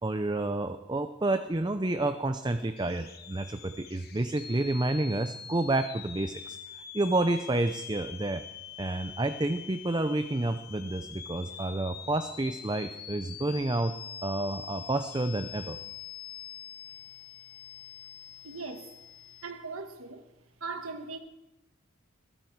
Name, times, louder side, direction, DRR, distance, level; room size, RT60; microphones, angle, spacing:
voice 1, 0.0-6.6 6.9-8.4 8.8-13.9 14.2-15.8, right 2 dB, 20° right, 9 dB, 0.6 m, -29 dB
sound 1, 2.8-19.5, left 8 dB, 45° left, 1.1 m, -45 dB
voice 2, 18.4-18.9 19.4-20.3 20.6-21.2, right 4 dB, 80° right, 7 dB, 1.5 m, -39 dB
21.5 x 13.5 x 4.7 m, 0.96 s
head